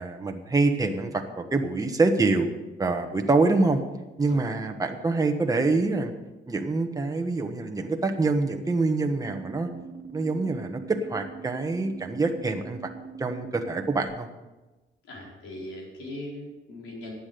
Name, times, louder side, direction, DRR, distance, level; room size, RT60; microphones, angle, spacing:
voice 1, 0.0-2.5 2.8-3.8 4.2-6.1 6.5-9.7 10.1-12.9 13.2-14.3, right 3 dB, 15° right, 4 dB, 1.3 m, -25 dB
sound 1, 9.1-14.1, right 5 dB, 55° right, 1.2 m, -43 dB
voice 2, 15.0-17.1, left 1 dB, 90° left, -2 dB, 4.4 m, -40 dB
11.5 x 8.6 x 6.8 m, 1.1 s
cardioid pair, 90°, 20 cm